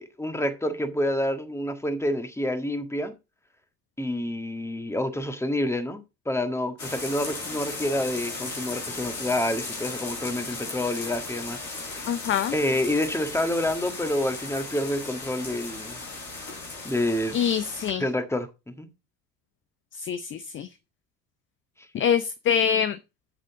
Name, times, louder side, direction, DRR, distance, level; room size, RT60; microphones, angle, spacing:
voice 1, 0.0-3.1 4.0-12.1 12.5-16.0 16.8-17.4 18.0-18.9, left 1 dB, 5° left, 1.6 m, -28 dB
sound 1, 6.8-17.9, left 3 dB, 85° left, 2.9 m, -36 dB
voice 2, 12.1-12.5 17.3-18.0 19.9-20.7 21.9-23.0, left 8 dB, 25° left, 0.6 m, -25 dB
11.0 x 7.4 x 3.9 m
figure-of-eight pair, 65°, 50 cm